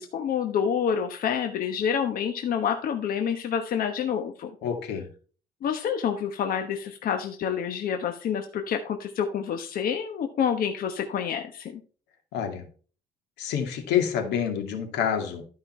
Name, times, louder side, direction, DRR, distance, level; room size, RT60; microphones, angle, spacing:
voice 1, 0.0-4.5 5.6-11.8, left 7 dB, 60° left, 6 dB, 1.2 m, -28 dB
voice 2, 4.6-5.1 12.3-12.7 13.4-15.4, left 8 dB, 85° left, 6 dB, 2.2 m, -27 dB
12.5 x 5.5 x 4.3 m, 0.40 s
cardioid pair, 110°, 17 cm